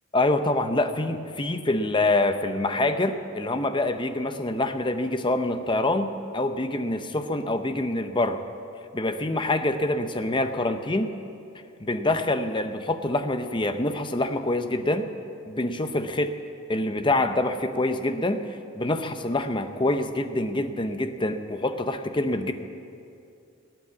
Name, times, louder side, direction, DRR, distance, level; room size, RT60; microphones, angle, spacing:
voice 1, 0.1-8.4 8.9-11.1 11.8-15.1 15.5-16.3 16.7-22.5, left 2 dB, 20° left, 8 dB, 0.6 m, -26 dB
18.0 x 9.2 x 8.3 m, 2.6 s
head